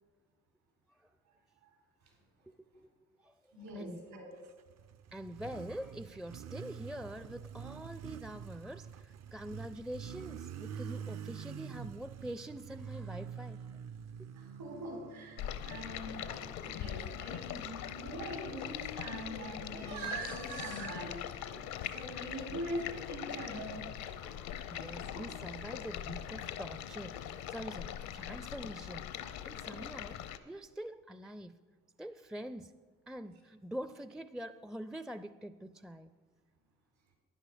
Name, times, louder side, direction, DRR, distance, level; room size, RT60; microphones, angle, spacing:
voice 1, 2.5-2.9 3.2-3.4 3.7-4.0 5.1-13.7 14.2-14.3 21.5-21.8 24.1-27.2 27.5-31.6 32.0-32.8 33.1-36.1, equal, ahead, 0.4 m, -45 dB
voice 2, 3.5-4.3 14.4-21.3 21.9-23.8, right 1 dB, 80° right, 4.2 m, -42 dB
Motorcycle, 4.5-17.2, right 7 dB, 45° right, 0.5 m, -46 dB
Stream, 15.4-30.4, left 10 dB, 80° left, 0.8 m, -42 dB
11.5 x 10.0 x 5.0 m
supercardioid pair, 55°, 36 cm